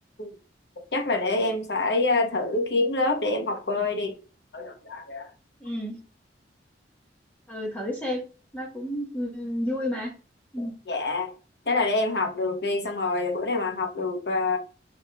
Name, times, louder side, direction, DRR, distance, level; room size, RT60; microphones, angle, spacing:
voice 1, 0.9-4.2 4.5-5.3 10.6-11.3 11.7-14.6, left 2 dB, 65° left, 1.0 m, -26 dB
voice 2, 5.6-6.0 7.5-8.2 8.5-10.1 10.5-10.7, left 1 dB, 10° left, 1.2 m, -31 dB
5.0 x 3.6 x 2.3 m
head